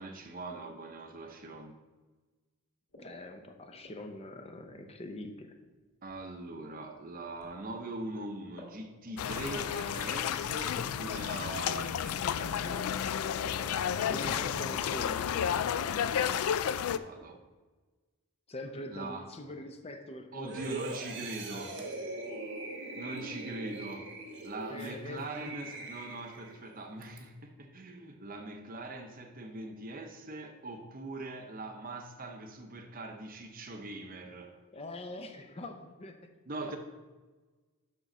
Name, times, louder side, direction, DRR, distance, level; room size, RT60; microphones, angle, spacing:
voice 1, 0.0-1.8 6.0-13.0 16.6-17.4 18.9-19.3 20.3-21.8 22.9-24.1 24.4-34.6 36.5-36.8, right 2 dB, 40° right, 0.8 m, -42 dB
sound 1, 2.9-5.3 6.1-6.2 7.4-7.6 7.9-8.0 8.6-8.8 9.1-9.9 11.0-11.1 12.1-12.2 12.6-17.2, left 1 dB, 65° left, 2.2 m, -51 dB
voice 2, 3.0-5.5 14.1-15.3 18.5-21.3 24.7-25.6 34.7-36.2, left 1 dB, 30° left, 0.6 m, -43 dB
sound 2, 9.2-17.0, left 8 dB, 85° left, 0.3 m, -32 dB
sound 3, 20.5-26.6 27.0-27.2, right 2 dB, 55° right, 1.1 m, -41 dB
6.5 x 5.4 x 6.1 m
head